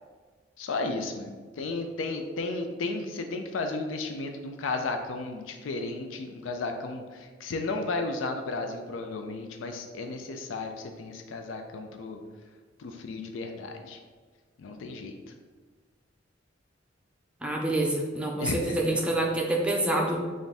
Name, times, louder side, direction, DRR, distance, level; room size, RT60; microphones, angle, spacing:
voice 1, 0.6-12.2 12.8-14.0 14.6-15.2 18.4-18.8, left 3 dB, 80° left, 5 dB, 0.4 m, -34 dB
voice 2, 17.4-20.2, right 1 dB, 5° right, -1 dB, 0.5 m, -27 dB
3.4 x 2.5 x 4.0 m, 1.5 s
head